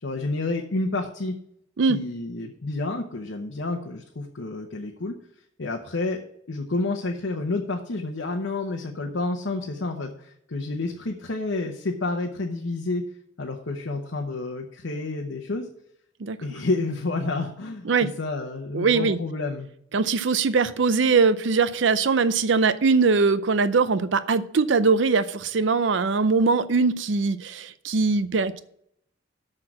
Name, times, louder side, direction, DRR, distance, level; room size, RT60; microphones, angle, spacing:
voice 1, 0.0-1.4 1.9-5.1 5.6-6.2 6.5-13.0 13.4-15.7 16.4-19.7, left 2 dB, 75° left, 0.9 m, -29 dB
voice 2, 18.7-19.2 19.9-28.6, right 4 dB, 70° right, 0.5 m, -21 dB
6.5 x 6.1 x 7.5 m
head